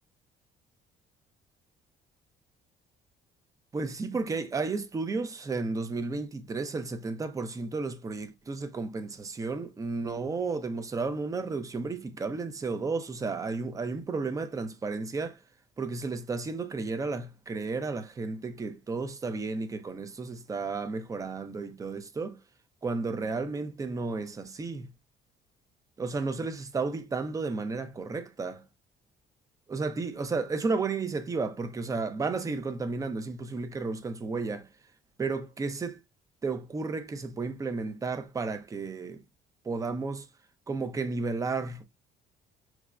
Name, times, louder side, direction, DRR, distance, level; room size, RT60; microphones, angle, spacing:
voice 1, 3.7-15.4 15.8-22.4 22.8-24.9 26.0-28.6 29.7-34.7 35.2-35.9 36.4-39.2 39.6-40.3 40.7-41.8, right 4 dB, 20° right, 0.5 m, -33 dB
5.8 x 2.1 x 2.3 m
cardioid pair, 110°, 17 cm